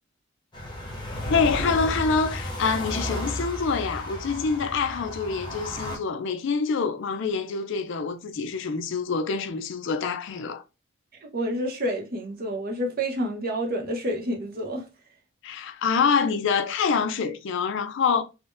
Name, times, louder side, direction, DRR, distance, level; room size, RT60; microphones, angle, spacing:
sound 1, 0.5-6.0, left 1 dB, 20° left, 0.8 m, -33 dB
voice 1, 1.3-10.6 15.4-18.2, left 5 dB, 60° left, 0.4 m, -26 dB
voice 2, 11.2-14.9, equal, 45° right, 0.8 m, -29 dB
3.6 x 2.2 x 2.5 m
head